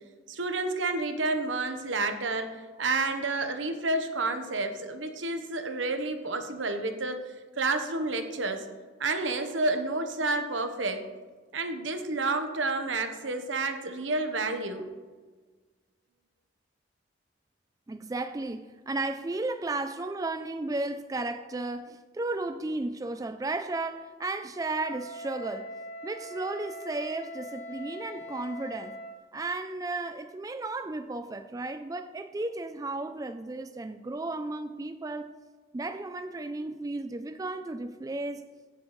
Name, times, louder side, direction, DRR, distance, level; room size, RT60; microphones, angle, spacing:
voice 1, 0.3-7.3 7.6-8.7 9.0-11.1 11.5-14.9, right 3 dB, 85° right, 1.0 m, -30 dB
voice 2, 17.9-25.7 26.0-29.0 29.3-35.3 35.7-38.5, right 2 dB, 20° right, 0.3 m, -34 dB
Wind instrument woodwind instrument, 24.6-29.2, left 1 dB, 70° left, 2.9 m, -42 dB
16.0 x 7.0 x 3.1 m
head